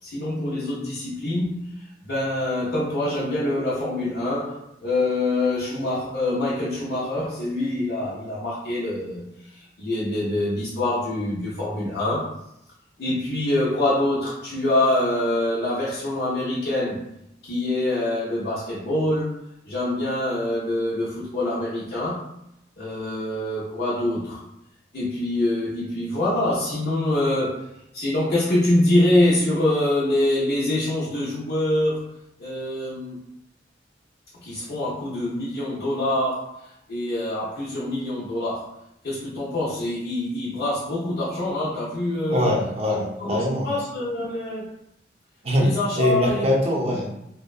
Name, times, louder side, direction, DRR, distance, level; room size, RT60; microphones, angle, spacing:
voice 1, 0.0-12.4 13.0-17.0 17.4-19.4 19.7-22.2 22.8-24.4 24.9-32.0 32.4-33.2 34.3-38.7 39.0-42.5 43.2-44.7 45.6-46.5, left 1 dB, 65° left, -9 dB, 0.6 m, -25 dB
voice 2, 42.3-43.7 45.4-45.7 46.0-47.1, left 1 dB, 35° right, -2 dB, 0.5 m, -23 dB
2.7 x 2.1 x 2.3 m, 0.80 s
head